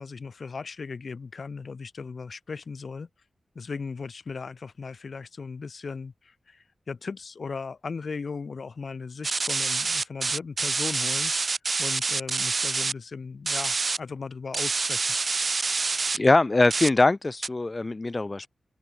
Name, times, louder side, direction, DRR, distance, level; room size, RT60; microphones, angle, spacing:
voice 1, 0.0-3.1 3.5-15.1, left 4 dB, 55° left, 5.7 m, -37 dB
sound 1, 9.2-12.9 13.5-14.0 14.5-16.2 16.7-16.9 17.4-17.5, right 4 dB, 45° right, 3.5 m, -27 dB
voice 2, 16.1-18.5, left 2 dB, 30° left, 1.6 m, -22 dB
wide cardioid pair, 105°, 0 cm